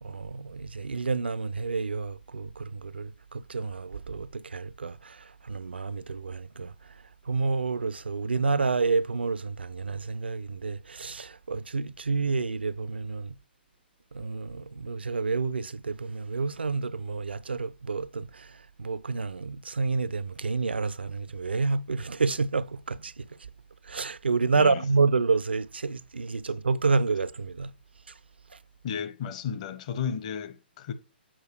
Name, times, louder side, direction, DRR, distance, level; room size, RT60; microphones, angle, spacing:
voice 1, 0.0-13.4 14.1-23.4 23.8-27.7 28.1-28.2 28.5-28.6, right 4 dB, 70° right, 0.4 m, -29 dB
voice 2, 24.5-24.9 28.8-30.9, left 7 dB, 35° left, 0.9 m, -33 dB
7.4 x 4.6 x 4.6 m
figure-of-eight pair, 125°, 6 cm